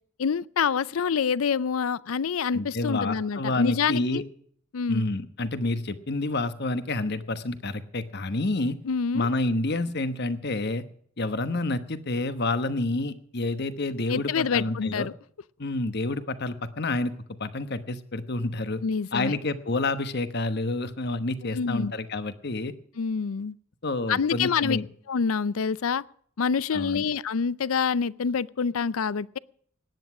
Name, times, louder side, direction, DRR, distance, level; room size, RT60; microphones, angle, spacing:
voice 1, 0.2-4.2 4.7-5.1 8.8-9.3 14.1-15.1 18.8-19.4 21.4-21.9 23.0-23.5 24.1-24.8 25.1-26.0 26.4-29.4, left 6 dB, 85° left, 0.5 m, -27 dB
voice 2, 2.5-4.2 4.9-8.8 9.1-10.8 11.2-15.1 15.6-17.1 17.4-18.8 19.1-22.7 23.8-24.9 26.7-27.0, left 2 dB, 50° left, 1.1 m, -29 dB
17.0 x 10.5 x 6.1 m
head